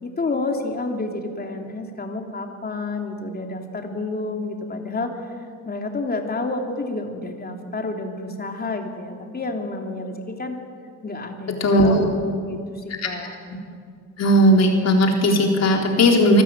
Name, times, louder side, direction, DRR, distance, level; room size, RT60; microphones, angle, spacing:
voice 1, 0.0-5.1 5.6-10.6 11.0-13.4, left 3 dB, 30° left, 3 dB, 3.1 m, -29 dB
voice 2, 11.6-12.1 13.0-13.1 14.2-16.4, equal, 60° left, 1 dB, 4.0 m, -17 dB
25.0 x 13.0 x 8.9 m, 2.2 s
cardioid pair, 90°, 30 cm